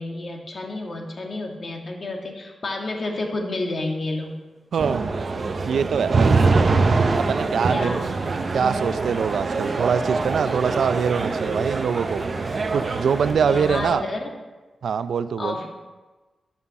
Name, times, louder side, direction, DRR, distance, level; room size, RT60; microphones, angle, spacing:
voice 1, 0.0-4.4 7.7-8.0 13.4-14.3 15.4-15.7, left 2 dB, 45° left, 1 dB, 1.8 m, -30 dB
sound 1, 4.0-13.3, equal, 5° left, 2.9 m, -44 dB
voice 2, 4.7-5.1 5.7-6.3 7.2-12.2 12.7-14.1 14.8-15.6, right 6 dB, 80° right, 12 dB, 0.4 m, -24 dB
sound 2, 4.8-13.9, right 3 dB, 45° right, 0.7 m, -24 dB
11.0 x 5.6 x 7.0 m, 1.2 s
wide cardioid pair, 135°, 0 cm